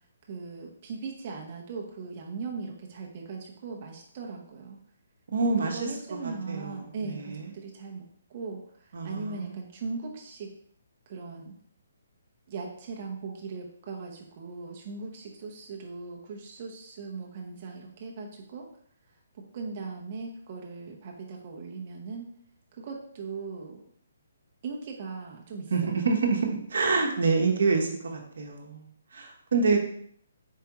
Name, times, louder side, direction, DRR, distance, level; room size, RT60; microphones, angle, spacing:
voice 1, 0.3-4.8 5.7-10.5 11.1-11.5 12.5-18.7 19.3-22.3 22.7-23.8 24.6-25.9, right 4 dB, 40° right, -1 dB, 0.8 m, -39 dB
voice 2, 5.3-5.8 6.2-7.5 8.9-9.6 25.7-28.8 29.1-29.8, right 4 dB, 65° right, 2 dB, 1.0 m, -27 dB
4.6 x 3.3 x 3.0 m, 0.62 s
figure-of-eight pair, 140°, 0 cm